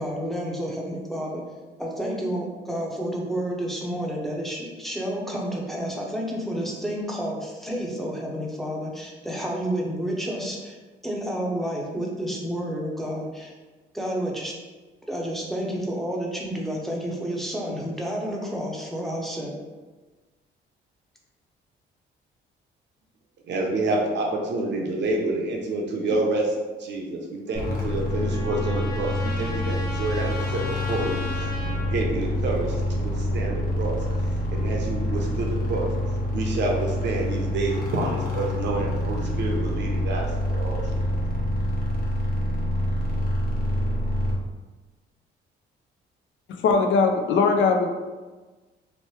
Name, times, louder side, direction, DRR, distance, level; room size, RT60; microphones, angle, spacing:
voice 1, 0.0-1.4 1.8-10.8 11.0-13.5 13.9-14.5 15.1-19.5, equal, ahead, -2 dB, 0.6 m, -30 dB
voice 2, 23.5-34.0 34.5-35.9 36.3-41.0, right 2 dB, 60° right, 0 dB, 0.7 m, -28 dB
sound 1, 27.5-44.3, left 1 dB, 45° left, 0.9 m, -27 dB
Trumpet, 27.5-32.0, left 2 dB, 20° left, 1.0 m, -37 dB
voice 3, 46.5-47.9, left 4 dB, 70° left, 4 dB, 0.4 m, -20 dB
3.0 x 2.1 x 3.0 m, 1.3 s
cardioid pair, 90°, 20 cm